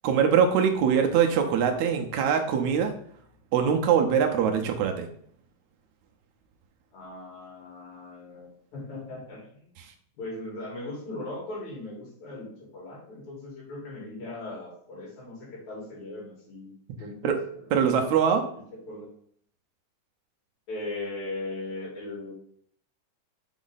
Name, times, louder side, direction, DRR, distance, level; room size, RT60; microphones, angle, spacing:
voice 1, 0.0-2.9 3.5-5.1 17.2-17.4 17.7-18.4, right 7 dB, 75° right, 4 dB, 2.1 m, -23 dB
voice 2, 6.9-9.7 10.1-16.7 17.0-17.7 18.7-19.1 20.7-22.3, left 2 dB, 70° left, -4 dB, 4.0 m, -39 dB
6.2 x 4.9 x 4.0 m, 0.63 s
omnidirectional pair, 3.4 m